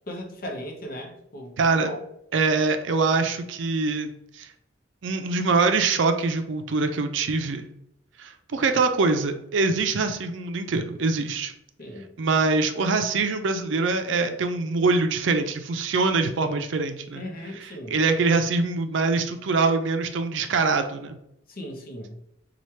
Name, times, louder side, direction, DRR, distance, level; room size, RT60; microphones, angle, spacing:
voice 1, 0.1-2.0 11.8-12.1 17.1-18.0 21.5-22.2, equal, 50° left, 1 dB, 0.8 m, -37 dB
voice 2, 1.6-1.9 2.3-4.5 5.0-7.7 8.2-11.5 12.2-17.2 17.6-21.2, right 3 dB, 65° right, 7 dB, 0.4 m, -24 dB
3.1 x 2.3 x 4.2 m, 0.76 s
head